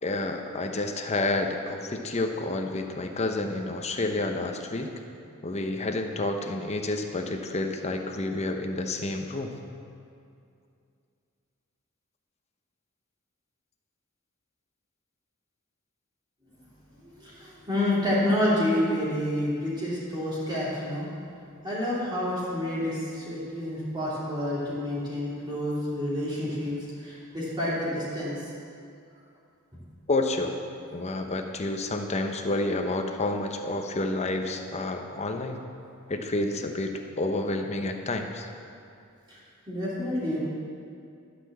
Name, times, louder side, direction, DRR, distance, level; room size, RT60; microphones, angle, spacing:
voice 1, 0.0-4.9 5.4-9.6 30.1-30.6 30.9-35.6 36.1-38.5, left 2 dB, 30° left, 4 dB, 0.8 m, -29 dB
voice 2, 17.0-21.1 21.6-28.5 39.3-39.4 39.7-40.4, left 1 dB, 20° right, -9 dB, 2.6 m, -29 dB
12.0 x 6.0 x 7.2 m, 2.5 s
head